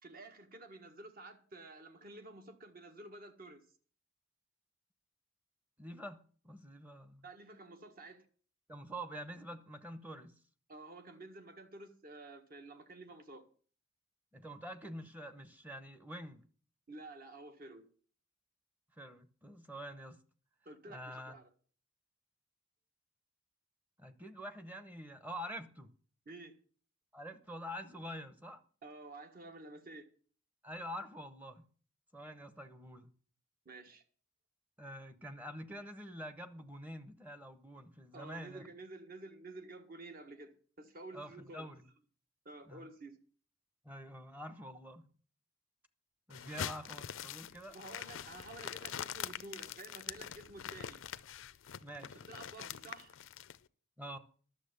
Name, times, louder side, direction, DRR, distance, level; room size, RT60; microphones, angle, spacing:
voice 1, 0.0-3.6 7.2-8.2 10.7-13.4 16.9-17.8 20.6-21.5 26.2-26.5 28.8-30.1 33.6-34.0 38.1-40.5 40.8-41.7 42.4-43.2 47.7-51.0 52.3-53.1, right 2 dB, 45° right, 1.5 m, -51 dB
voice 2, 5.8-7.3 8.7-10.3 14.3-16.4 19.0-20.2 20.9-21.4 24.0-25.9 27.1-28.6 30.6-31.7 32.1-33.1 34.8-38.7 41.1-41.8 42.7-42.9 43.8-45.0 46.3-47.8 51.8-52.2 54.0-54.2, equal, 10° right, 0.9 m, -46 dB
sound 1, 46.3-53.6, left 9 dB, 70° left, 0.5 m, -44 dB
11.5 x 7.1 x 6.7 m
head